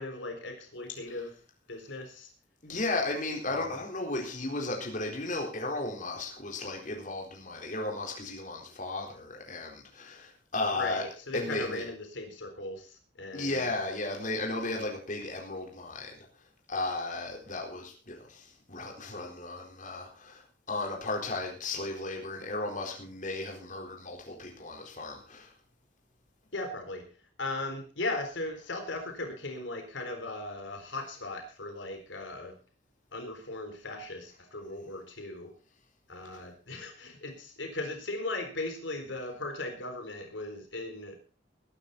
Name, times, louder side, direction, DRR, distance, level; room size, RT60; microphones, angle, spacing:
voice 1, 0.0-1.3 1.7-2.3 3.5-3.8 10.7-13.8 26.5-27.1 27.4-32.5 33.1-35.5 36.1-41.2, left 2 dB, 80° left, 4 dB, 4.0 m, -38 dB
voice 2, 2.6-11.0 11.3-11.8 13.3-16.1 16.7-25.5, left 2 dB, 45° left, 1 dB, 4.2 m, -35 dB
21.0 x 10.0 x 4.2 m, 0.36 s
head